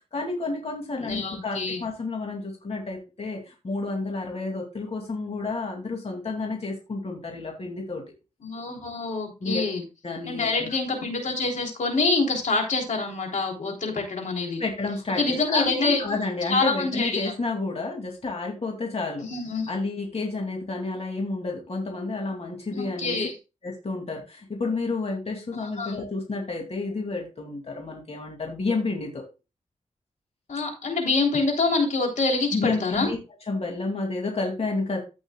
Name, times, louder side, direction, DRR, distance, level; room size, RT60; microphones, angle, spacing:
voice 1, 0.1-8.0 9.4-9.6 10.0-10.7 14.6-19.3 19.7-23.2 23.6-29.2 32.5-33.2 33.5-35.0, left 3 dB, 50° left, 0 dB, 2.7 m, -30 dB
voice 2, 1.0-1.8 8.4-9.8 10.3-14.6 15.2-16.0 16.5-17.3 19.3-19.7 22.7-23.3 25.5-25.9 30.5-33.1, left 3 dB, 70° left, 1 dB, 3.3 m, -26 dB
15.5 x 6.2 x 2.3 m, 0.28 s
wide cardioid pair, 90°, 13 cm